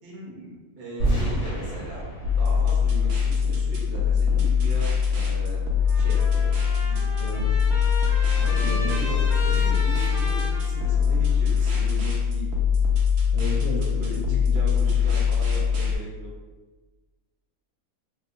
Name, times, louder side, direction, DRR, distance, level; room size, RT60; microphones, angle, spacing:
voice 1, 0.0-2.1 2.4-5.7 5.9-6.5 6.8-7.3 8.3-12.5 13.8-16.3, right 1 dB, 50° right, -5 dB, 0.9 m, -38 dB
sound 1, 1.0-4.0, right 1 dB, 85° left, 1.3 m, -29 dB
sound 2, 2.2-16.0, left 6 dB, 85° right, 1.1 m, -22 dB
Trumpet, 5.8-11.4, equal, 5° right, 0.4 m, -36 dB
voice 2, 13.3-14.3, left 2 dB, 65° left, -6 dB, 1.1 m, -33 dB
2.9 x 2.7 x 2.5 m, 1.3 s
omnidirectional pair, 1.6 m